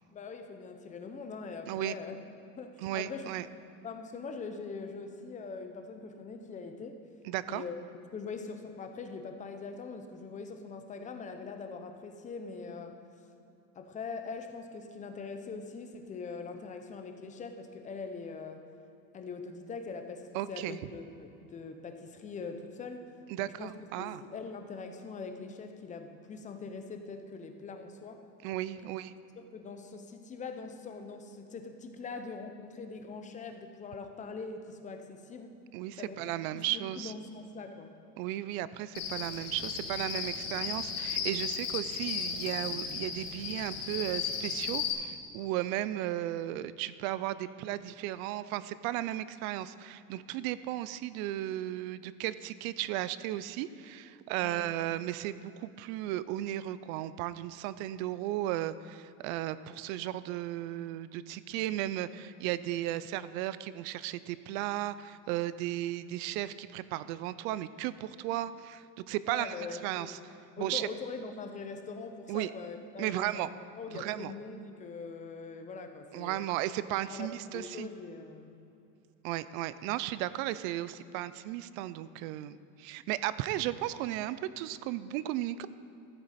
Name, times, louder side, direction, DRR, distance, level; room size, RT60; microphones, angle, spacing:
voice 1, 0.1-2.2 2.6-3.3 3.8-7.0 7.5-7.8 8.1-13.0 13.8-18.6 19.1-23.1 23.4-23.7 24.0-28.2 28.8-28.9 29.4-35.5 36.0-37.9 54.4-54.7 69.3-70.2 70.6-76.4 77.1-78.5, left 4 dB, 20° left, 6 dB, 0.6 m, -42 dB
voice 2, 2.8-3.5 7.2-7.6 20.3-20.8 23.3-24.2 28.4-29.1 35.7-37.1 38.2-70.2 70.6-70.9 72.3-72.5 73.0-73.5 73.9-74.3 76.1-77.9 79.2-85.7, right 14 dB, 70° right, 16 dB, 0.5 m, -35 dB
Cricket, 38.9-44.9, left 6 dB, 90° left, 1.8 m, -35 dB
14.0 x 7.7 x 4.2 m, 2.7 s
cardioid pair, 150°, 42 cm